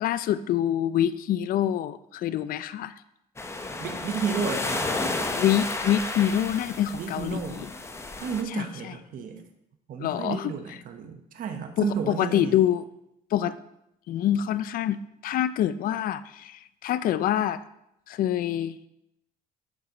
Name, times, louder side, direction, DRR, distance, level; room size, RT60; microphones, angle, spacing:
voice 1, 0.0-2.9 5.3-7.7 8.5-9.0 10.0-10.8 11.8-12.8 13.3-13.5 14.1-17.6 18.1-18.8, left 11 dB, 60° left, 14 dB, 0.4 m, -26 dB
sound 1, 3.4-8.4, left 2 dB, 15° left, 0.8 m, -32 dB
voice 2, 3.8-4.9 6.9-7.7 8.2-9.4 9.9-12.6, right 6 dB, 55° right, 6 dB, 1.0 m, -32 dB
9.2 x 5.5 x 3.9 m, 0.82 s
cardioid pair, 110°, 17 cm